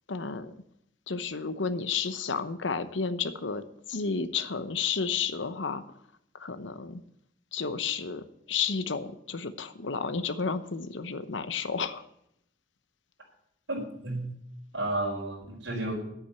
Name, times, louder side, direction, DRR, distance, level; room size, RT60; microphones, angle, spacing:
voice 1, 0.1-0.5 1.1-3.6 3.9-5.8 6.3-7.0 7.5-12.0, left 5 dB, 85° left, 11 dB, 0.9 m, -32 dB
voice 2, 13.7-14.3 14.7-15.9, right 2 dB, 90° right, -1 dB, 4.9 m, -32 dB
9.9 x 8.7 x 8.1 m, 0.75 s
head